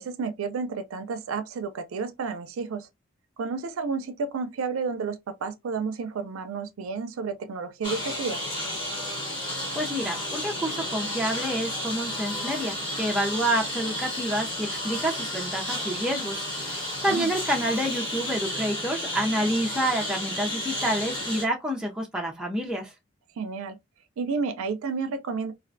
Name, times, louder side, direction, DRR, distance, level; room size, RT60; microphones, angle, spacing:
voice 1, 0.0-2.9 3.4-8.4 17.1-17.3 23.4-23.8 24.2-25.5, right 4 dB, 85° right, 0.4 m, -31 dB
Engine, 7.8-21.5, left 1 dB, 25° left, 1.0 m, -32 dB
voice 2, 9.7-22.9, right 1 dB, 5° right, 0.4 m, -28 dB
2.4 x 2.1 x 2.4 m
head